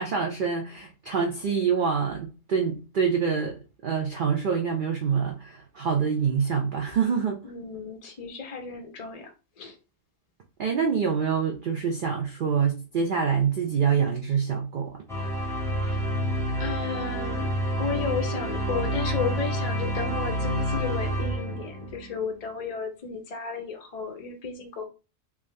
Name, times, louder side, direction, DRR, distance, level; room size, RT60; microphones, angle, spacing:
voice 1, 0.0-7.4 10.6-15.0, right 6 dB, 55° right, 0.6 m, -26 dB
voice 2, 7.4-9.8 15.7-16.0 16.6-17.5 17.8-24.9, left 5 dB, 45° left, 0.5 m, -33 dB
sound 1, 15.1-22.1, equal, 5° left, 0.7 m, -28 dB
3.5 x 2.6 x 3.2 m
omnidirectional pair, 1.3 m